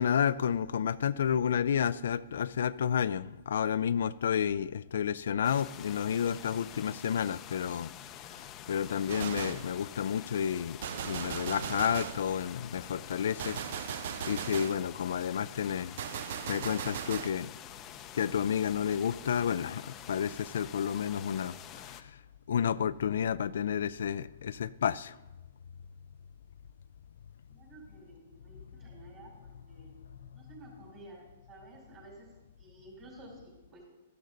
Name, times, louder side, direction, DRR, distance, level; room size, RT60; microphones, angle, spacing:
voice 1, 0.0-7.9 8.3-10.8 11.0-16.0 16.5-17.5 18.1-22.2 22.5-25.2, left 8 dB, 75° left, 0.3 m, -31 dB
sound 1, 5.4-22.0, left 11 dB, 25° left, 0.6 m, -47 dB
Gunshot gunfire, 9.1-9.7 10.8-12.3 13.4-14.8 16.0-17.4, right 9 dB, 60° right, 0.4 m, -38 dB
voice 2, 27.5-29.3 29.7-29.9 30.3-32.3 32.6-33.9, right 2 dB, 25° right, 4.7 m, -52 dB
13.0 x 12.0 x 3.9 m
hypercardioid pair, 150°, 0 cm